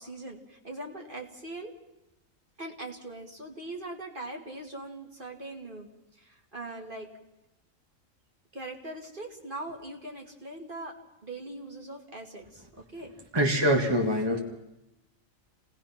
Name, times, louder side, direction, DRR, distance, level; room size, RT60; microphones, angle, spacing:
voice 1, 0.0-1.7 2.6-5.9 6.2-7.1 8.5-11.0 11.2-12.7 12.9-13.1, right 2 dB, 40° right, 2 dB, 2.6 m, -41 dB
voice 2, 13.3-14.4, equal, 20° right, 1 dB, 1.9 m, -24 dB
29.0 x 19.0 x 5.9 m, 0.93 s
omnidirectional pair, 1.4 m